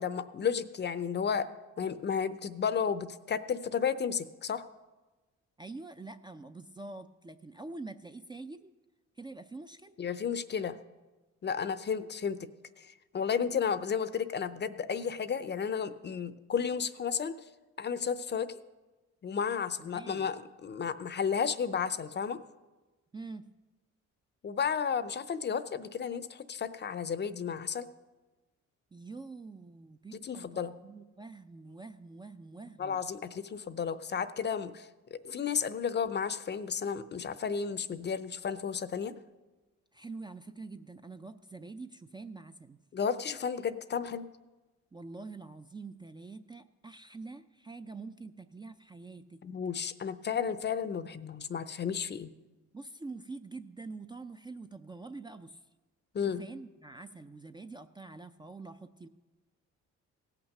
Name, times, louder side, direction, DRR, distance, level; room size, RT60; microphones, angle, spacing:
voice 1, 0.0-1.5 1.8-4.6 10.0-10.8 11.4-12.5 12.8-17.4 17.8-18.5 19.2-22.4 24.4-27.9 30.2-30.7 32.8-39.1 42.9-44.3 49.4-52.3 56.1-56.4, left 7 dB, 35° left, 14 dB, 0.6 m, -33 dB
voice 2, 5.6-8.7 9.2-10.0 19.8-20.3 23.1-23.5 28.9-33.0 39.9-42.8 44.9-49.4 52.7-55.6 56.3-59.1, right 3 dB, 15° right, 9 dB, 0.4 m, -46 dB
16.5 x 5.9 x 6.5 m, 1.2 s
cardioid pair, 90°, 30 cm